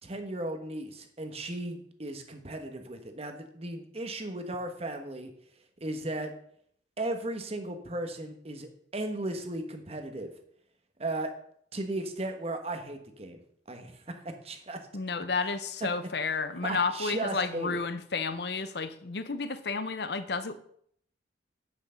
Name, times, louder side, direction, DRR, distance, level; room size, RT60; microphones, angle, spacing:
voice 1, 0.0-5.3 5.8-6.3 7.0-10.3 11.0-11.3 11.7-13.4 13.7-14.8 16.6-17.8, right 2 dB, 30° right, 6 dB, 1.2 m, -36 dB
voice 2, 14.9-20.5, left 4 dB, 60° left, 12 dB, 0.7 m, -31 dB
9.1 x 6.0 x 5.7 m, 0.66 s
head